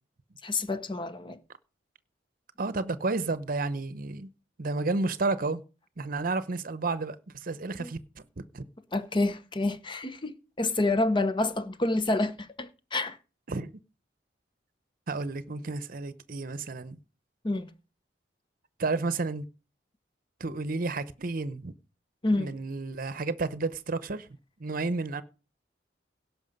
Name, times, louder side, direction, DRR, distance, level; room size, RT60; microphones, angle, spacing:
voice 1, 0.4-1.4 7.8-7.9 8.9-10.3 10.6-13.2 17.4-17.7 22.2-22.5, left 2 dB, 25° left, 0.8 m, -28 dB
voice 2, 2.6-4.3 4.6-5.6 6.0-8.0 8.4-8.7 13.5-13.7 15.1-17.0 18.8-19.5 20.4-21.7 22.4-24.3 24.6-25.2, right 3 dB, 55° right, 0.8 m, -31 dB
17.0 x 5.9 x 5.3 m
head